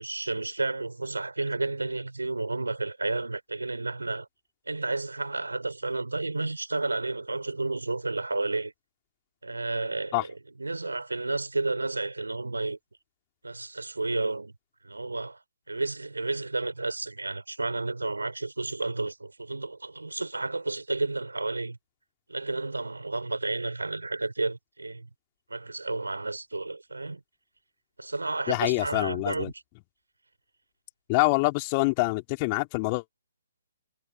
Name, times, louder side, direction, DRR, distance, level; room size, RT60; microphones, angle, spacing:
voice 1, 0.0-4.3 4.7-8.7 9.4-12.8 13.4-14.5 14.8-15.4 15.7-21.8 22.3-25.1 25.5-27.2 28.0-29.5, right 3 dB, 75° right, 3.2 m, -31 dB
voice 2, 28.5-29.5 31.1-33.0, left 28 dB, 30° left, 3.3 m, -25 dB
figure-of-eight pair, 125°, 0 cm